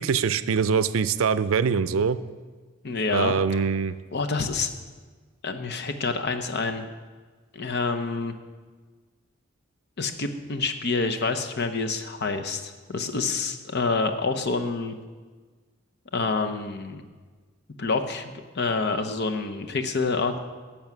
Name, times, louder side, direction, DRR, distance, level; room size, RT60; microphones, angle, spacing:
voice 1, 0.0-2.2 3.1-3.9, right 6 dB, 85° right, 14 dB, 0.4 m, -23 dB
voice 2, 2.8-3.3 4.1-4.7 5.4-6.9 7.5-8.3 10.0-14.9 16.1-17.0 17.8-20.4, left 4 dB, 55° left, 7 dB, 0.8 m, -27 dB
10.5 x 7.1 x 6.0 m, 1.4 s
head